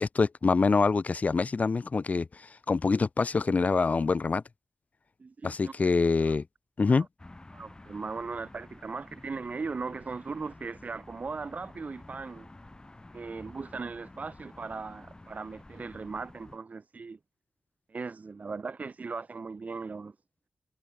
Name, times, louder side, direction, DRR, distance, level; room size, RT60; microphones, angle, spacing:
voice 1, 0.0-4.4 5.4-6.4 6.8-7.1, left 4 dB, 55° left, 1.2 m, -25 dB
voice 2, 5.2-5.7 6.2-6.3 6.9-7.1 7.5-12.5 13.1-17.2 17.9-20.1, right 4 dB, 55° right, 1.5 m, -38 dB
sound 1, 7.2-16.6, left 2 dB, 25° left, 3.9 m, -51 dB
cardioid pair, 50°, 3 cm